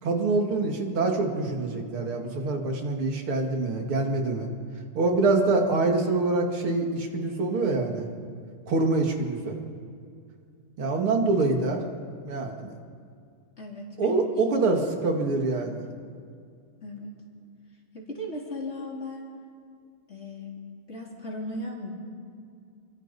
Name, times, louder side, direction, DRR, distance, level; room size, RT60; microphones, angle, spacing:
voice 1, 0.0-4.5 4.9-8.1 8.7-9.6 10.8-11.8 12.2-12.8 14.0-15.8, right 3 dB, 75° right, 2 dB, 3.0 m, -25 dB
voice 2, 13.6-14.2 14.5-14.6 16.8-17.1 17.9-19.3 20.1-20.5 20.9-21.9, left 1 dB, 30° left, -2 dB, 3.9 m, -37 dB
29.5 x 23.0 x 4.2 m, 2.3 s
omnidirectional pair, 2.4 m